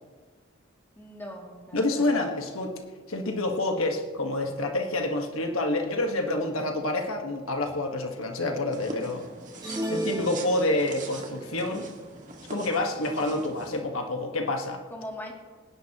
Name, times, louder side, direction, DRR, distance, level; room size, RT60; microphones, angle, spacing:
voice 1, 1.0-2.3 14.9-15.3, equal, 10° left, -2 dB, 2.5 m, -41 dB
voice 2, 1.7-2.7 3.1-9.2 9.9-11.9 12.5-14.8, left 2 dB, 70° left, 3 dB, 1.4 m, -28 dB
sound 1, 8.7-13.8, right 2 dB, 35° right, 1.9 m, -43 dB
sound 2, 9.6-11.2, right 1 dB, 20° right, 2.4 m, -33 dB
26.0 x 11.0 x 3.0 m, 1.5 s
head